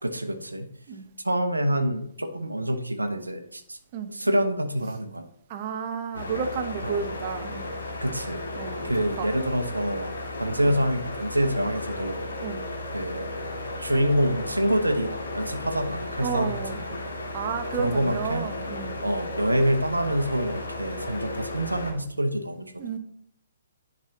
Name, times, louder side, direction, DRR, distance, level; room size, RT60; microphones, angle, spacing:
voice 1, 0.0-0.7 1.2-3.8 4.1-5.3 6.8-7.0 8.0-8.4 8.8-10.1 10.4-12.3 12.9-13.3 13.8-17.0 17.8-18.5 19.0-22.7, equal, 85° right, 7 dB, 0.9 m, -26 dB
voice 2, 5.5-7.7 8.6-8.9 9.2-9.3 12.4-12.6 16.2-16.8 17.3-19.0 22.8-23.0, right 6 dB, 35° right, 8 dB, 0.8 m, -31 dB
sound 1, 6.1-21.9, left 2 dB, 65° left, 1.9 m, -34 dB
10.5 x 5.3 x 2.8 m, 0.68 s
figure-of-eight pair, 125°, 0 cm